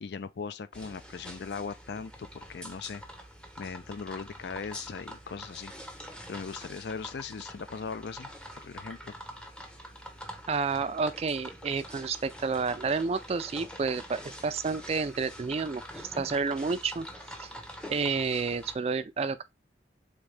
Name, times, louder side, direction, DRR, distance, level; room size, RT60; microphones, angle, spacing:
voice 1, 0.0-3.0 3.6-5.7 6.3-8.3 8.6-9.2, left 5 dB, 65° left, 0.4 m, -39 dB
sound 1, 0.7-18.7, equal, 5° left, 0.6 m, -45 dB
voice 2, 10.5-17.1 17.4-17.5 17.9-19.4, right 4 dB, 35° right, 0.3 m, -30 dB
3.7 x 3.6 x 3.2 m
head